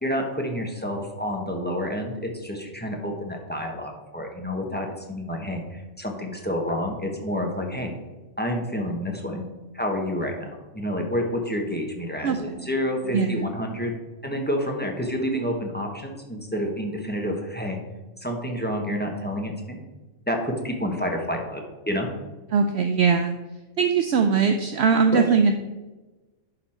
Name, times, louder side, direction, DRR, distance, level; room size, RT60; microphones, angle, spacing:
voice 1, 0.0-7.9 8.4-9.4 9.7-10.5 10.7-13.9 14.2-17.8 18.2-19.8 20.3-22.1 25.1-25.2, equal, 10° left, 1 dB, 1.0 m, -29 dB
voice 2, 12.2-12.7 13.1-13.5 22.5-23.3 23.8-25.5, right 5 dB, 65° right, 6 dB, 0.7 m, -21 dB
11.0 x 3.9 x 4.3 m, 1.1 s
omnidirectional pair, 1.4 m